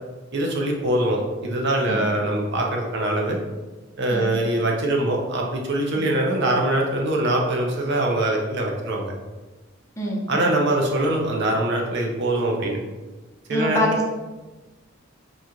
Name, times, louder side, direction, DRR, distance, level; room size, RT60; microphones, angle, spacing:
voice 1, 0.3-3.4 4.0-9.1 10.3-12.8 13.5-13.8, right 1 dB, 60° right, 0 dB, 0.7 m, -23 dB
voice 2, 10.0-10.5 13.5-14.1, left 1 dB, 15° left, -4 dB, 0.8 m, -25 dB
3.9 x 3.0 x 3.7 m, 1.2 s
head